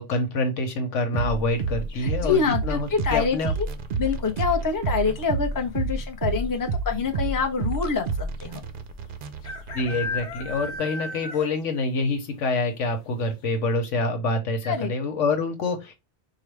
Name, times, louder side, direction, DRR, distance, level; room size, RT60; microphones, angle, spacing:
voice 1, 0.0-3.5 9.7-15.9, left 2 dB, 85° left, 1.3 m, -26 dB
sound 1, 1.1-10.8, right 3 dB, 55° right, 0.6 m, -30 dB
sound 2, 1.9-2.4 4.2-4.6 4.8-4.9 5.1-5.7 6.4-6.5 6.8-6.9 8.4-8.5 9.4-11.7 12.1-12.2 12.7-12.8 13.2-13.3, left 2 dB, 70° left, 1.1 m, -35 dB
voice 2, 2.0-3.7 4.0-8.6 14.6-14.9, left 5 dB, 20° left, 0.6 m, -26 dB
4.7 x 2.3 x 3.3 m
omnidirectional pair, 1.2 m